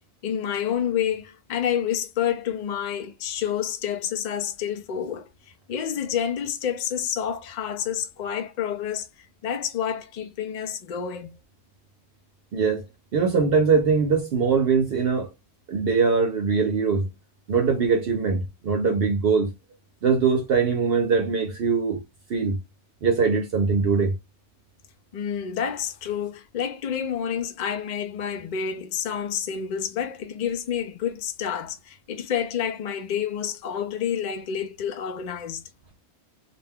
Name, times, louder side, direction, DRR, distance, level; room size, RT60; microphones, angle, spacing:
voice 1, 0.2-5.3 5.7-11.4 25.1-35.6, left 8 dB, 55° left, 0.5 m, -29 dB
voice 2, 12.5-12.9 13.1-15.3 15.7-17.1 17.5-19.5 20.0-22.0 22.3-22.6 23.0-24.1, right 5 dB, 60° right, 0.8 m, -22 dB
2.4 x 2.2 x 3.4 m
omnidirectional pair, 1.2 m